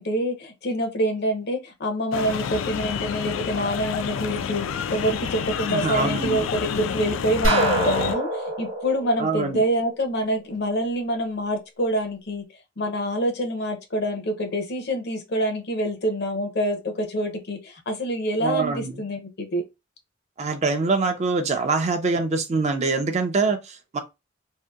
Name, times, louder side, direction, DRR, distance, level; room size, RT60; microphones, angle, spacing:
voice 1, 0.0-12.5 12.8-19.6, equal, 60° left, 0.6 m, -26 dB
sound 1, 2.1-8.2, left 7 dB, 90° left, 0.3 m, -29 dB
voice 2, 5.7-6.5 9.2-9.6 18.4-18.9 20.4-24.0, right 4 dB, 35° right, 0.4 m, -24 dB
sound 2, 7.4-10.2, right 1 dB, 80° right, 0.9 m, -25 dB
2.7 x 2.5 x 2.3 m
head